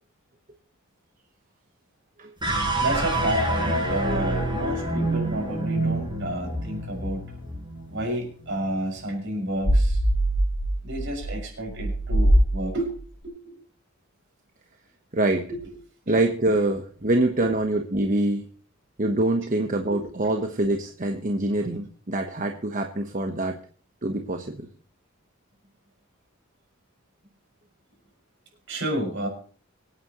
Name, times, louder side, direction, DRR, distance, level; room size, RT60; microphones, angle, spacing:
sound 1, 2.4-8.8, right 1 dB, 25° right, 6.3 m, -27 dB
voice 1, 2.8-7.3 7.9-10.0 10.8-12.9 13.2-13.6 15.5-15.7 17.0-17.5 19.9-20.0 28.7-29.3, right 1 dB, 65° right, 1 dB, 6.2 m, -31 dB
sound 2, 9.6-13.0, right 1 dB, 65° left, 2.5 m, -22 dB
voice 2, 15.1-15.5 16.1-18.5 19.0-23.6 24.0-24.7, right 2 dB, 40° right, 5 dB, 1.2 m, -25 dB
25.0 x 9.4 x 3.1 m, 0.42 s
head